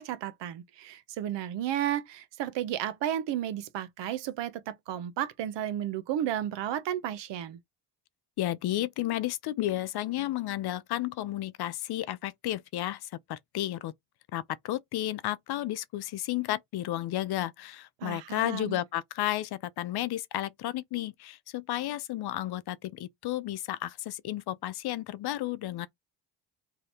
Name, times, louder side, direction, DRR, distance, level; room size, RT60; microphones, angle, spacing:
voice 1, 0.0-7.6 18.0-18.8, right 11 dB, 70° right, 0.7 m, -33 dB
voice 2, 8.4-13.9 14.3-25.9, left 14 dB, 60° left, 0.5 m, -32 dB
2.8 x 2.6 x 3.3 m
cardioid pair, 95°, 44 cm